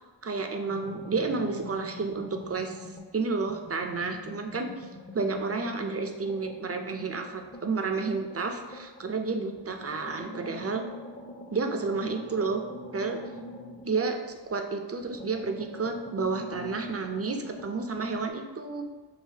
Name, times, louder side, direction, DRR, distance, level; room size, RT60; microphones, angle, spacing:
voice 1, 0.2-2.8 3.1-4.9 5.1-10.8 11.5-12.6 12.9-13.2 13.8-18.8, right 4 dB, 35° right, 5 dB, 0.4 m, -31 dB
sound 1, 0.7-3.1 3.5-9.1 9.6-14.6 14.9-18.3, left 2 dB, 25° left, 0.5 m, -44 dB
4.8 x 2.7 x 2.8 m, 1.3 s
wide cardioid pair, 50°, 45 cm